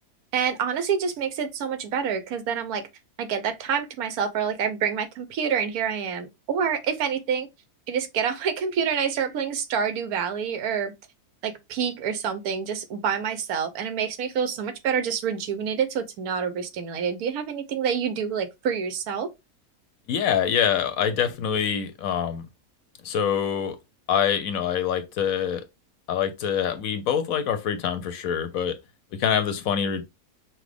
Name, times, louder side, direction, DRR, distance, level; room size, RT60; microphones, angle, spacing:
voice 1, 0.3-2.8 3.2-7.5 7.9-10.9 11.4-19.3, right 7 dB, 75° right, 1.2 m, -27 dB
voice 2, 20.1-22.5 23.0-23.8 24.1-25.6 26.1-28.8 29.1-30.0, left 8 dB, 70° left, 1.0 m, -25 dB
5.9 x 2.1 x 3.3 m
omnidirectional pair, 1.6 m